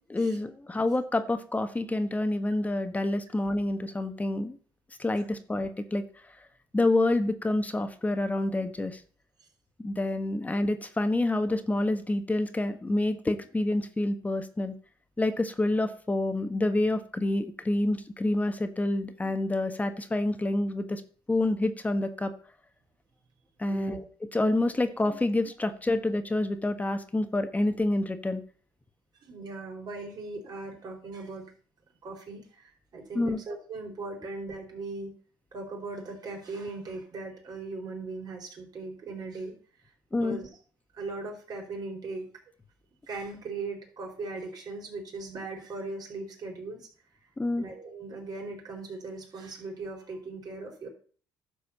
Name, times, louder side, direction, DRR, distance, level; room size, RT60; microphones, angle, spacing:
voice 1, 0.1-4.6 5.0-6.3 6.7-9.0 9.8-14.7 15.2-21.0 21.3-22.3 23.6-24.0 24.3-28.4 33.1-33.4 40.1-40.4 47.4-47.6, left 2 dB, 20° left, 9 dB, 1.3 m, -28 dB
voice 2, 23.6-24.0 29.3-31.4 32.0-35.1 35.5-39.5 40.2-40.5 41.0-42.3 43.1-46.9 47.6-50.9, right 3 dB, 50° right, 2 dB, 4.4 m, -39 dB
11.5 x 4.9 x 7.2 m, 0.43 s
supercardioid pair, 80°, 9 cm